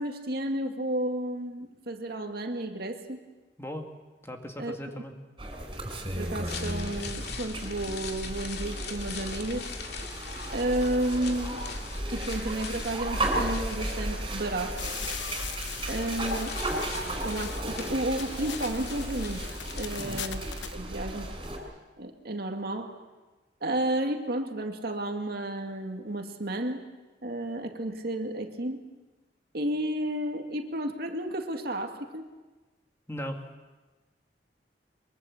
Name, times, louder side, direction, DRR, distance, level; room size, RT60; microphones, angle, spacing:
voice 1, 0.0-3.2 4.6-4.8 6.2-9.7 10.5-11.6 12.1-14.8 15.9-16.6 17.2-19.4 19.7-20.4 20.7-21.3 22.0-23.0 23.6-26.8 27.2-28.8 29.5-32.3, right 1 dB, 55° right, 4 dB, 2.2 m, -32 dB
voice 2, 4.2-5.1 20.0-20.3 33.1-33.4, equal, 15° left, 3 dB, 2.1 m, -37 dB
sound 1, 5.4-21.6, right 1 dB, 25° right, 5.2 m, -34 dB
sound 2, 6.4-20.5 20.8-20.9, left 6 dB, 60° left, 2.4 m, -43 dB
sound 3, 14.8-20.8, left 9 dB, 80° left, 1.1 m, -41 dB
23.5 x 23.0 x 7.3 m, 1.2 s
head